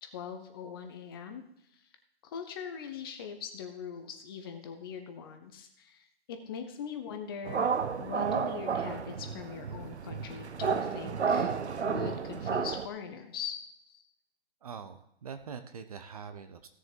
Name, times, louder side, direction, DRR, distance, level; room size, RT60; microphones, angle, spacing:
voice 1, 0.0-1.4 1.7-1.8 2.2-7.7 8.0-11.5 11.8-13.6 13.9-14.0, left 7 dB, 20° left, 7 dB, 0.9 m, -41 dB
sound 1, 7.5-12.9, right 6 dB, 90° right, 0.9 m, -31 dB
voice 2, 14.6-16.7, right 6 dB, 35° right, 10 dB, 0.8 m, -44 dB
16.0 x 6.8 x 4.5 m, 0.74 s
hypercardioid pair, 155°, 32 cm